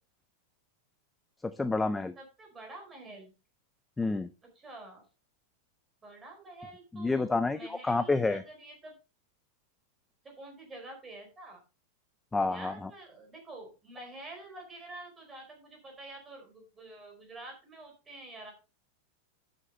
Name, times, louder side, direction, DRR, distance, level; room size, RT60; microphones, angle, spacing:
voice 1, 1.4-2.1 4.0-4.3 6.9-8.4 12.3-12.9, left 3 dB, 5° left, 11 dB, 0.5 m, -29 dB
voice 2, 2.2-3.3 4.5-5.0 6.0-8.9 10.2-11.6 12.5-18.5, right 2 dB, 10° right, 1 dB, 4.6 m, -48 dB
11.5 x 8.2 x 3.9 m, 0.31 s
supercardioid pair, 170°, 0 cm